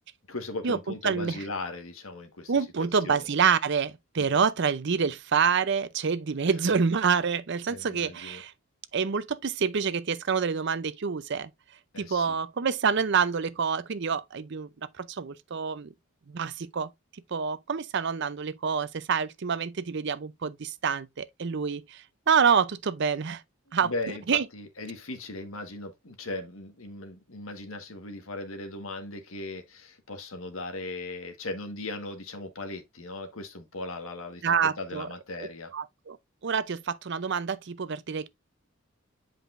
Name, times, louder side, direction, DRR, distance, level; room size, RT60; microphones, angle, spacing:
voice 1, 0.3-2.5 2.8-3.3 4.2-4.4 7.7-8.4 11.9-12.4 23.8-35.7, left 2 dB, 85° left, 1.5 m, -38 dB
voice 2, 2.5-8.5 8.9-11.5 12.0-14.7 15.0-15.9 16.3-16.9 17.3-23.4 23.7-23.9 24.3-24.4 34.4-35.1 35.4-35.5 35.7-36.2 36.4-38.3, right 6 dB, 55° right, 0.6 m, -27 dB
8.0 x 5.0 x 2.5 m
head